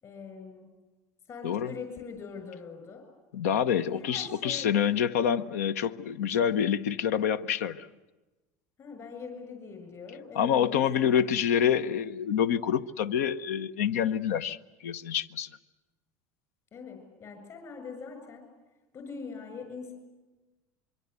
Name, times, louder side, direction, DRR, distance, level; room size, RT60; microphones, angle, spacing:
voice 1, 0.0-0.7 1.3-3.1 3.7-4.7 8.8-11.4 16.7-18.4 18.9-19.9, left 5 dB, 45° left, 5 dB, 7.1 m, -42 dB
voice 2, 3.3-7.9 10.3-15.5, left 8 dB, 90° left, 14 dB, 0.9 m, -27 dB
25.5 x 23.5 x 8.2 m, 1.1 s
supercardioid pair, 110°, 8 cm